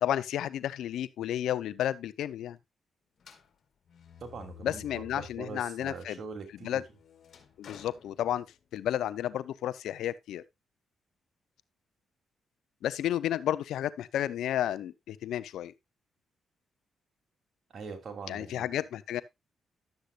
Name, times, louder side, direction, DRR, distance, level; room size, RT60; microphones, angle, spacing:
voice 1, 0.0-2.6 4.6-6.2 6.6-6.8 7.6-8.5 8.7-10.4 12.8-15.7 18.3-19.2, left 11 dB, 85° left, 0.5 m, -32 dB
sound 1, 3.2-5.6 6.0-8.9, left 9 dB, 60° left, 2.2 m, -53 dB
voice 2, 4.2-6.8 17.7-18.8, right 4 dB, 60° right, 2.9 m, -42 dB
11.5 x 8.1 x 2.4 m
cardioid pair, 75°, 0 cm